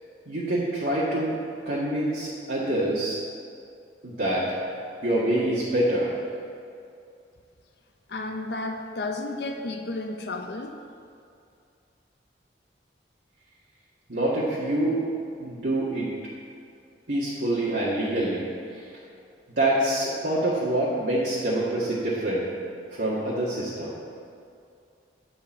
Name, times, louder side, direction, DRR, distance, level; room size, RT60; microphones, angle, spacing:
voice 1, 0.3-1.3 1.7-3.2 4.0-4.5 5.0-6.1 14.1-15.0 15.4-16.1 17.1-18.5 18.7-18.8 19.6-22.4 22.9-23.9, right 1 dB, 65° right, -9 dB, 1.8 m, -26 dB
voice 2, 8.1-10.8, left 2 dB, 65° left, 3 dB, 0.7 m, -32 dB
10.5 x 5.5 x 7.3 m, 2.5 s
head